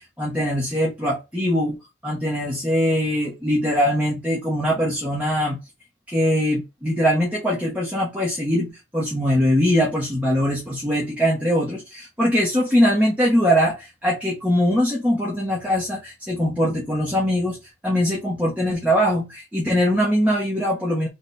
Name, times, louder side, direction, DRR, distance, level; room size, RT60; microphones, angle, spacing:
voice 1, 0.0-1.8 2.0-5.6 6.1-8.7 8.9-17.6 17.8-21.1, equal, 5° right, 1.3 m, -22 dB
3.4 x 3.3 x 4.2 m
head